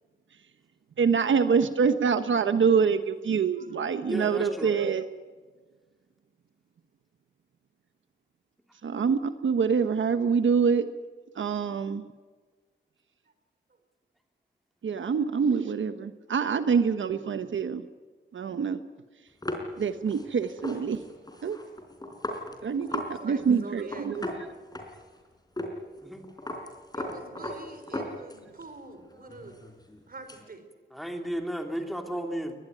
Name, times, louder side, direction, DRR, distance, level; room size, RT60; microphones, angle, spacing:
voice 1, 1.0-5.1 8.8-10.9 11.4-12.0 14.8-17.8 18.3-18.8 19.8-21.0 21.4-21.6 22.6-24.2, right 6 dB, 85° right, 10 dB, 1.1 m, -25 dB
voice 2, 3.6-3.9 22.7-24.5 27.0-29.6 30.1-30.6, right 3 dB, 50° right, 8 dB, 4.2 m, -45 dB
voice 3, 4.1-4.7 26.0-26.2 30.9-32.6, equal, ahead, 4 dB, 3.0 m, -33 dB
sound 1, 19.4-23.1 23.4-23.5 23.8-25.2 25.6-25.7 26.0-28.6 29.0-30.4, left 1 dB, 20° left, 4.4 m, -37 dB
23.0 x 20.0 x 9.3 m, 1.4 s
wide cardioid pair, 110°, 20 cm